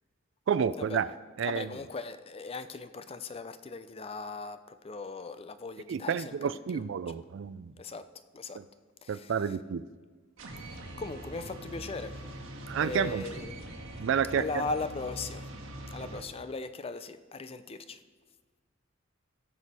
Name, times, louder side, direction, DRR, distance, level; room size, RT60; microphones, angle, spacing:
voice 1, 0.5-1.1 1.4-1.7 5.9-7.7 8.5-8.6 9.1-9.8 12.7-13.2 14.0-14.5, right 7 dB, 65° right, 16 dB, 0.4 m, -30 dB
voice 2, 1.4-6.8 7.8-8.0 8.3-8.6 9.0-9.6 10.7-12.2 12.8-13.5 14.3-15.5 15.9-18.0, left 3 dB, 30° left, 11 dB, 0.5 m, -39 dB
sound 1, 10.4-16.2, right 1 dB, 85° right, 1.6 m, -43 dB
17.5 x 6.3 x 4.3 m, 1.4 s
head